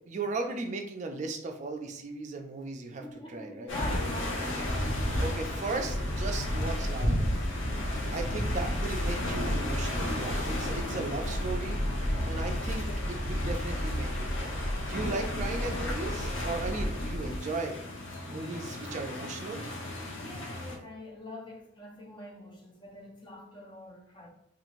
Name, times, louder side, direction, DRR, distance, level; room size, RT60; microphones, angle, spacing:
voice 1, 0.1-3.0 3.3-3.7 5.2-7.4 8.1-11.8 12.2-14.6 14.8-17.8 18.3-19.6, right 3 dB, 40° right, 0.4 m, -36 dB
voice 2, 3.0-4.9 17.0-17.1 20.1-24.3, left 1 dB, 25° left, 0.5 m, -44 dB
sound 1, 3.7-20.8, left 1 dB, 80° left, 0.7 m, -34 dB
sound 2, 5.7-17.4, equal, 55° left, 1.4 m, -34 dB
2.6 x 2.4 x 3.0 m
head